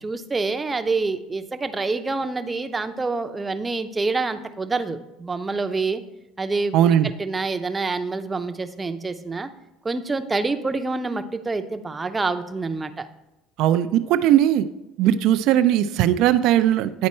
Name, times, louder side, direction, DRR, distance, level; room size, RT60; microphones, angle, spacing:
voice 1, 0.0-6.0 6.4-6.8 7.0-9.5 9.8-13.1, right 3 dB, 20° right, 9 dB, 0.6 m, -27 dB
voice 2, 6.7-7.1 13.6-14.6 15.0-17.1, right 11 dB, 65° right, 11 dB, 0.3 m, -18 dB
9.5 x 4.3 x 4.3 m, 0.91 s
supercardioid pair, 95°, 0 cm